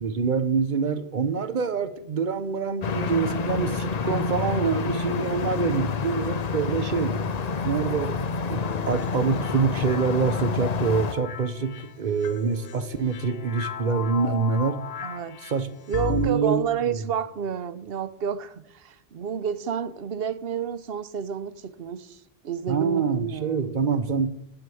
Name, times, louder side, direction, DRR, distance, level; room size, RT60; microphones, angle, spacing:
voice 1, 0.0-7.2 7.6-14.8 15.4-15.7 16.1-17.0 22.7-24.3, right 5 dB, 50° right, 11 dB, 1.0 m, -26 dB
sound 1, 2.8-11.1, left 5 dB, 45° left, 0.7 m, -28 dB
sound 2, 8.6-16.3, left 9 dB, 75° left, 0.9 m, -36 dB
voice 2, 15.0-15.4 15.9-23.8, right 7 dB, 70° right, 13 dB, 1.0 m, -30 dB
9.5 x 9.1 x 7.1 m, 0.78 s
omnidirectional pair, 1.0 m